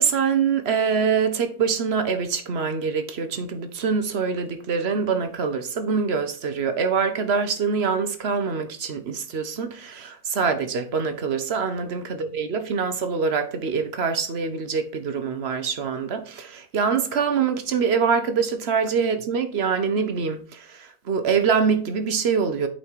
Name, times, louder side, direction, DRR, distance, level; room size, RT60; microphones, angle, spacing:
voice 1, 0.0-22.7, right 6 dB, 60° right, 1.1 m, -24 dB
8.6 x 4.4 x 4.6 m
omnidirectional pair, 1.2 m